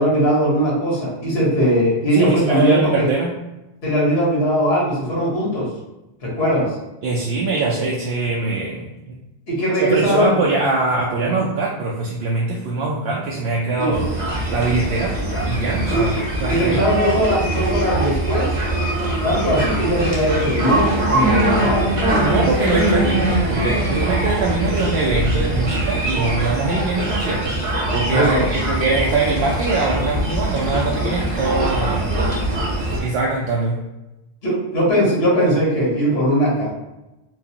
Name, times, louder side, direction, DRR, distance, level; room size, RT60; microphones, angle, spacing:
voice 1, 0.0-3.1 3.8-5.7 6.2-6.6 9.5-10.3 13.8-13.9 15.9-16.0 16.5-18.6 19.2-21.9 28.1-28.4 34.4-36.7, equal, 70° left, -5 dB, 1.5 m, -19 dB
voice 2, 2.1-3.4 7.0-9.2 9.7-14.1 14.5-15.2 15.5-16.1 16.4-16.8 22.2-32.1 32.5-33.8, right 3 dB, 75° right, -3 dB, 0.8 m, -22 dB
sound 1, 13.9-33.0, right 1 dB, 35° right, 0.8 m, -22 dB
4.5 x 2.0 x 2.8 m, 0.99 s
omnidirectional pair, 1.1 m